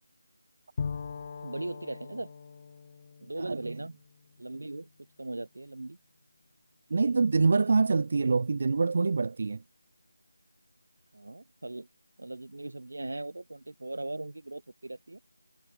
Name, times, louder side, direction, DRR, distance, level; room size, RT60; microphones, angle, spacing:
Bowed string instrument, 0.8-4.5, left 6 dB, 25° left, 0.9 m, -40 dB
voice 1, 1.4-2.3 3.2-3.9 4.4-4.9 5.2-6.0 11.1-11.9 12.2-15.2, right 2 dB, 75° right, 2.1 m, -39 dB
voice 2, 3.4-3.7 6.9-9.6, right 4 dB, 35° right, 0.4 m, -25 dB
figure-of-eight pair, 175°, 0 cm